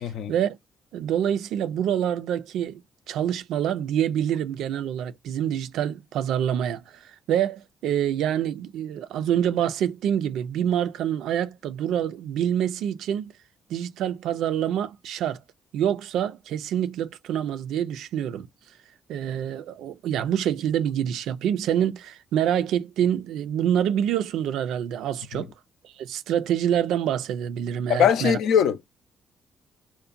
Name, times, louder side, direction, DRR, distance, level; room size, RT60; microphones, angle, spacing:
voice 1, 0.0-0.3 25.3-25.4 27.9-29.0, left 8 dB, 80° left, 0.5 m, -22 dB
voice 2, 0.9-2.8 3.1-6.8 7.3-13.3 13.7-15.4 15.7-18.5 19.1-25.5 25.8-28.4, right 10 dB, 85° right, 0.3 m, -26 dB
2.6 x 2.1 x 2.4 m
cardioid pair, 90°, 0 cm